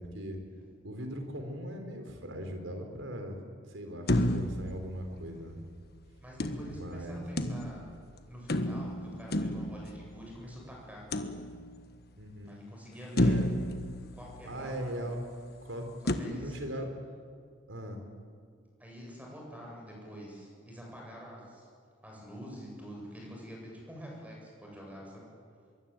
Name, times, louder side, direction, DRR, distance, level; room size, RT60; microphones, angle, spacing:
voice 1, 0.0-0.4 0.8-3.4 3.7-5.6 6.7-7.2 12.2-12.6 13.1-13.6 14.5-15.2 15.6-15.9 16.1-16.9 17.7-18.0, equal, 85° right, 5 dB, 4.5 m, -39 dB
sound 1, 4.1-5.7 6.4-8.0 8.5-10.4 11.1-12.0 12.5-12.6 13.2-14.8 16.1-16.2, left 1 dB, 55° left, 1.5 m, -31 dB
voice 2, 6.2-7.8 8.2-11.1 12.5-13.3 14.1-15.1 16.0-16.6 18.8-21.7 22.0-25.3, equal, 10° right, -2 dB, 8.0 m, -46 dB
24.5 x 23.0 x 9.2 m, 2.1 s
head